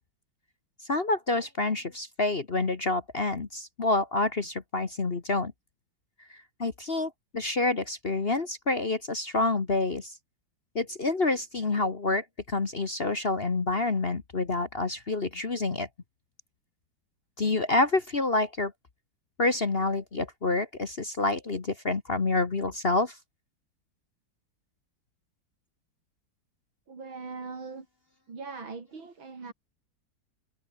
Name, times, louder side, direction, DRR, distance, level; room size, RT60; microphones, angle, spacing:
voice 1, 0.9-5.5 6.6-10.1 10.7-15.9 17.4-18.7 19.4-23.1, left 2 dB, 35° left, 1.5 m, -28 dB
voice 2, 26.9-27.9 28.3-29.5, right 4 dB, 90° right, 4.5 m, -40 dB
omnidirectional pair, 2.1 m